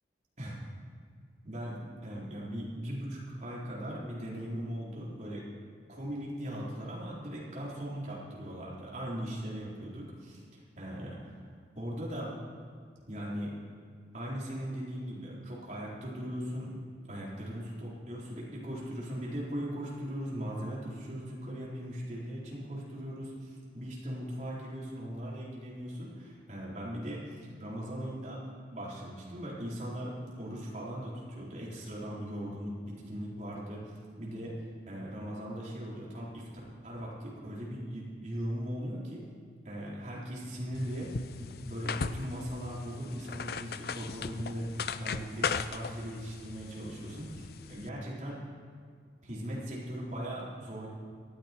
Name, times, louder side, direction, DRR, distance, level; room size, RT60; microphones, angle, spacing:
voice 1, 1.4-5.5 5.9-10.4 10.8-11.2 11.7-12.3 13.1-13.5 14.1-16.7 17.1-28.4 28.7-34.5 34.9-36.5 36.8-39.2 39.7-41.1 41.4-48.4 49.2-50.9, equal, 40° right, -6 dB, 4.1 m, -39 dB
sound 1, 40.7-47.9, left 5 dB, 55° left, 0.5 m, -38 dB
18.5 x 14.5 x 4.5 m, 2.1 s
head